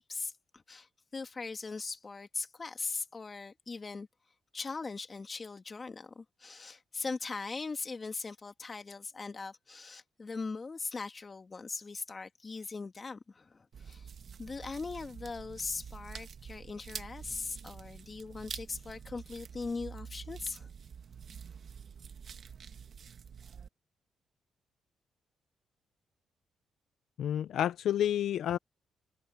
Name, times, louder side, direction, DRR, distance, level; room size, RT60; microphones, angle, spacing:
voice 1, 0.0-4.1 4.5-14.1 14.4-20.7, left 4 dB, 35° left, 2.2 m, -40 dB
sound 1, 13.7-23.7, right 7 dB, 55° right, 1.4 m, -47 dB
voice 2, 27.2-28.6, left 11 dB, 80° left, 0.6 m, -29 dB
cardioid pair, 80°, 0 cm